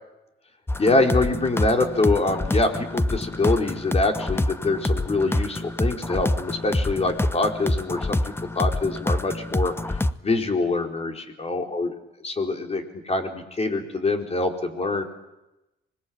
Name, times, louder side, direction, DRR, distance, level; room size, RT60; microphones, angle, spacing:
sound 1, 0.7-10.1, left 1 dB, 10° left, 0.9 m, -26 dB
voice 1, 0.8-5.5 5.8-9.7 10.2-11.9 12.2-15.0, left 2 dB, 30° left, 3 dB, 4.3 m, -24 dB
25.5 x 21.0 x 8.8 m, 0.96 s
cardioid pair, 90°, 20 cm